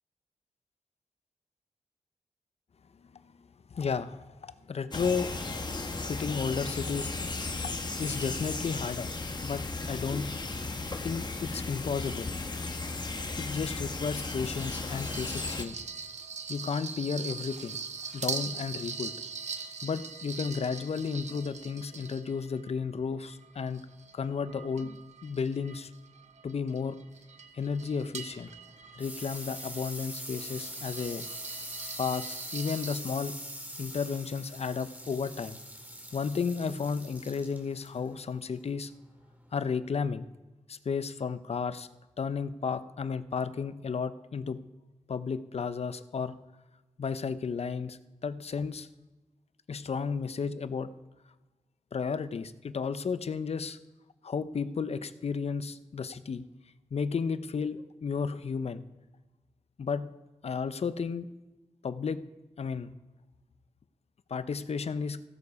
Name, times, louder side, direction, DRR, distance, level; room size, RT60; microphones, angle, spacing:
voice 1, 3.7-5.6 6.0-7.1 8.0-9.1 9.4-10.4 11.0-12.3 13.4-15.8 16.5-17.8 18.1-19.1 19.8-23.8 24.1-25.0 25.2-25.9 26.4-27.0 27.5-28.5 29.0-31.3 32.0-33.4 33.8-35.6 36.1-38.9 39.5-40.3 40.7-41.9 42.2-44.6 45.1-46.4 47.0-48.9 49.7-50.9 51.9-53.8 54.2-56.4 56.9-58.8 59.8-60.1 60.4-61.3 61.8-62.3 62.6-62.9 64.3-65.2, left 5 dB, 60° left, 13 dB, 0.7 m, -33 dB
sound 1, 4.9-15.6, left 3 dB, 35° left, 1.1 m, -35 dB
sound 2, 14.2-22.7 23.2-33.0, right 5 dB, 70° right, 0.8 m, -42 dB
sound 3, 28.3-39.6, equal, 15° right, 2.2 m, -43 dB
15.5 x 6.8 x 4.8 m, 1.1 s
cardioid pair, 55°, 12 cm